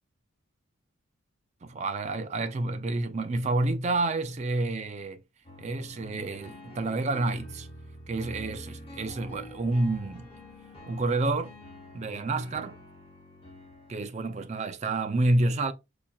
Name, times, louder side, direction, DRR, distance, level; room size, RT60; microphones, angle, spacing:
voice 1, 1.6-5.2 5.6-7.7 8.1-10.3 10.9-11.5 11.9-12.8 13.9-15.7, right 2 dB, 30° right, 0.4 m, -29 dB
sound 1, 5.4-14.0, left 1 dB, 25° left, 0.8 m, -47 dB
5.4 x 2.4 x 2.2 m
head